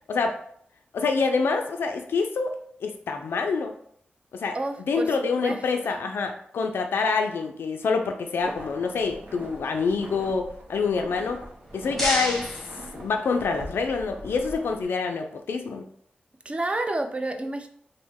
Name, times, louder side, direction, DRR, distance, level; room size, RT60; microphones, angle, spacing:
voice 1, 0.9-3.7 4.3-4.6 4.9-11.4 11.7-12.5 12.9-15.8, left 4 dB, 80° left, 5 dB, 0.3 m, -26 dB
voice 2, 4.5-5.6 5.8-6.0 16.5-17.7, right 2 dB, 30° right, 6 dB, 0.4 m, -30 dB
sound 1, 8.4-14.8, right 1 dB, 70° right, 0.7 m, -42 dB
sound 2, 11.5-13.6, equal, 5° left, 0.9 m, -32 dB
3.0 x 2.0 x 3.5 m, 0.64 s
cardioid pair, 55°, 4 cm